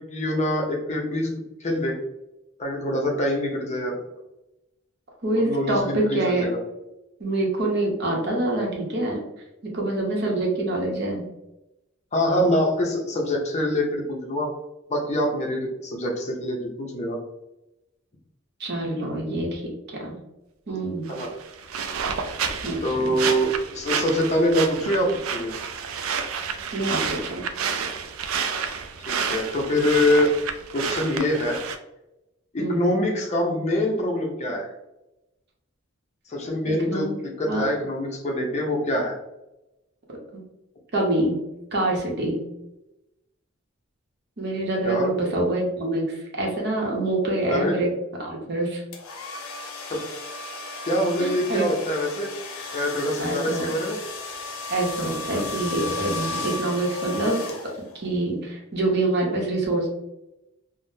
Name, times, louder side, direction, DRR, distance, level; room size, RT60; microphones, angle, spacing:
voice 1, 0.1-1.3 1.6-2.0 2.6-4.0 5.4-6.6 12.1-14.5 14.9-17.2 21.1-21.3 22.8-25.5 29.1-30.4 30.7-31.6 32.5-34.7 36.3-39.2 44.8-45.1 47.5-47.8 49.9-50.0 50.9-52.3 52.7-54.0 55.3-55.6, equal, 35° left, 0 dB, 0.5 m, -24 dB
voice 2, 5.2-6.5 7.2-9.2 9.6-11.3 18.6-19.6 19.9-20.2 20.7-21.1 22.6-23.2 26.7-27.4 32.6-32.9 36.7-37.2 37.5-37.7 40.3-40.4 40.9-41.4 41.7-42.5 44.4-47.9 48.2-48.8 51.2-51.7 53.2-53.6 54.7-57.4 57.9-59.9, right 2 dB, 55° right, -1 dB, 0.8 m, -25 dB
sound 1, 21.1-31.8, right 6 dB, 80° right, 0.4 m, -30 dB
sound 2, 48.9-58.1, left 3 dB, 85° left, 0.6 m, -35 dB
3.4 x 2.0 x 2.6 m, 0.93 s
head